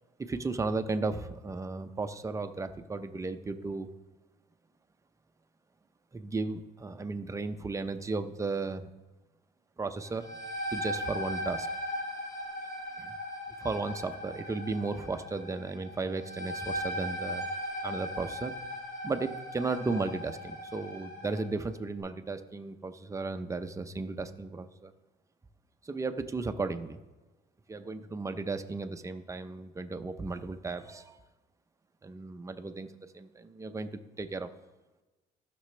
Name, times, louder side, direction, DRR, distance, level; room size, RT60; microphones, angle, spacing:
voice 1, 0.2-3.9 6.1-8.9 9.8-10.4 10.7-11.7 13.0-13.2 13.6-17.5 17.8-18.5 19.0-24.9 25.8-27.0 27.7-31.2 32.0-32.9 33.1-34.5, right 3 dB, 20° right, 9 dB, 0.6 m, -35 dB
sound 1, 10.0-21.5, equal, 60° left, 2.4 m, -38 dB
15.0 x 6.0 x 3.3 m, 1.2 s
cardioid pair, 110°, 17 cm